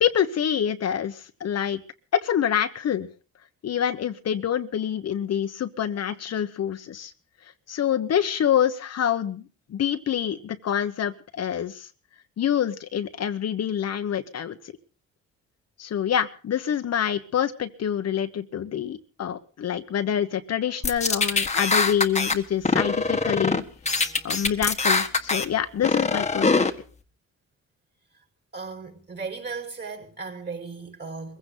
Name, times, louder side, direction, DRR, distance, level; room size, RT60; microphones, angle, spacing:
voice 1, 0.0-1.8 2.1-3.1 3.6-7.1 7.7-9.4 9.7-11.9 12.4-14.6 15.8-23.6 23.9-26.5, left 9 dB, 55° left, 1.2 m, -26 dB
sound 1, 20.8-22.3 22.6-23.6 23.9-25.4 25.8-26.7, left 4 dB, 20° left, 1.5 m, -23 dB
voice 2, 28.5-31.4, right 4 dB, 35° right, 5.3 m, -36 dB
22.0 x 16.0 x 4.0 m
cardioid pair, 90°, 30 cm